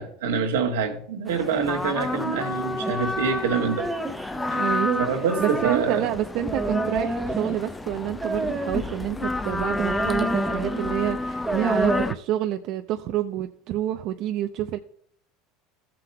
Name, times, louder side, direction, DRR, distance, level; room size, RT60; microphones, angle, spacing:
voice 1, 0.0-3.9 4.5-4.6 5.0-6.1, right 6 dB, 85° right, 1.6 m, -26 dB
sound 1, 1.3-12.1, left 2 dB, 10° left, 0.5 m, -30 dB
sound 2, 2.8-4.6 5.2-5.7 6.4-7.7 8.2-9.0 9.7-10.9 11.3-12.1, right 2 dB, 15° right, 1.4 m, -29 dB
voice 2, 4.5-5.0 5.4-14.8, right 12 dB, 60° right, 0.6 m, -28 dB
14.5 x 7.6 x 2.2 m
supercardioid pair, 95°, 0 cm